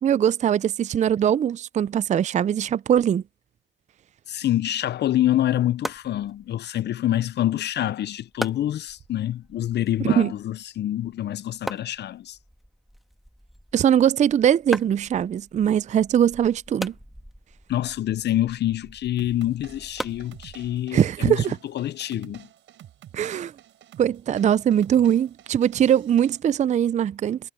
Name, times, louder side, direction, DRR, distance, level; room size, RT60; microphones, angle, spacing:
voice 1, 0.0-3.2 10.0-10.3 13.7-16.9 20.9-21.6 23.1-23.5 24.0-27.4, right 9 dB, 35° right, 0.4 m, -21 dB
voice 2, 4.3-12.4 17.7-21.4 21.7-22.5, left 12 dB, 60° left, 0.6 m, -26 dB
sound 1, 5.1-21.0, equal, ahead, 2.0 m, -40 dB
sound 2, 19.2-26.4, right 11 dB, 75° right, 4.7 m, -49 dB
cardioid pair, 90°, 20 cm